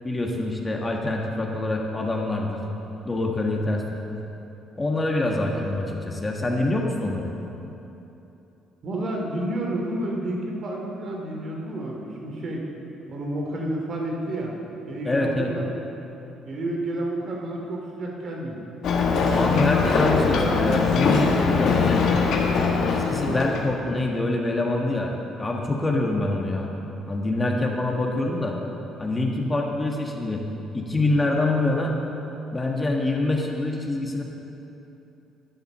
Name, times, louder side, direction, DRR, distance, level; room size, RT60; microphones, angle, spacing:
voice 1, 0.0-2.6 3.0-3.8 4.8-7.3 15.0-15.5 19.3-22.2 22.8-26.7 27.1-28.6 29.0-30.4 30.7-32.0 32.5-34.2, left 2 dB, 20° left, 0 dB, 1.4 m, -25 dB
voice 2, 5.2-5.6 8.8-12.6 13.1-14.5 14.9-15.7 16.4-18.6 23.2-23.4, right 1 dB, 55° right, 0 dB, 2.5 m, -30 dB
Ocean, 18.8-23.7, left 4 dB, 65° left, 1.4 m, -22 dB
10.5 x 8.0 x 6.6 m, 3.0 s
supercardioid pair, 80°, 0 cm